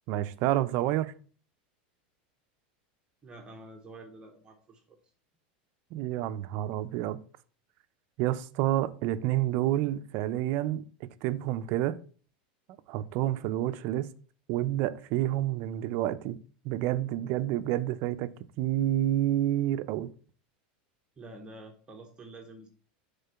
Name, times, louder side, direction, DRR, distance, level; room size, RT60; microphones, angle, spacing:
voice 1, 0.1-1.1 5.9-7.2 8.2-10.9 11.2-12.0 12.9-14.1 14.5-16.4 16.6-18.3 18.6-20.1, right 13 dB, 50° right, 0.5 m, -29 dB
voice 2, 3.2-5.0 21.2-22.7, right 2 dB, 20° right, 0.9 m, -48 dB
6.8 x 3.8 x 5.6 m
supercardioid pair, 145°, 5 cm